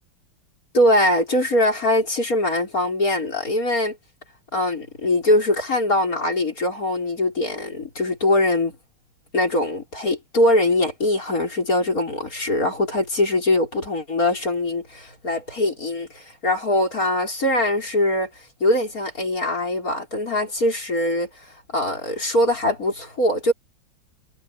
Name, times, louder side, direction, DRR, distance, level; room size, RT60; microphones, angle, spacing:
voice 1, 0.7-4.0 4.5-8.8 9.3-23.5, left 1 dB, 45° left, 5.5 m, -22 dB
omnidirectional pair, 2.2 m